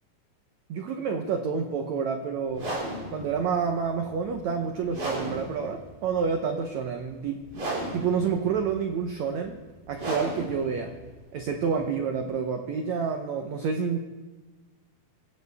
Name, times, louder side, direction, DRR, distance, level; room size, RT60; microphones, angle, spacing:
voice 1, 0.7-2.7 3.1-7.4 7.9-9.6 9.9-10.9 11.3-14.0, right 6 dB, 90° right, 5 dB, 1.5 m, -28 dB
sound 1, 2.5-12.4, right 1 dB, 45° right, 6.8 m, -36 dB
25.5 x 15.5 x 3.5 m, 1.2 s
omnidirectional pair, 4.6 m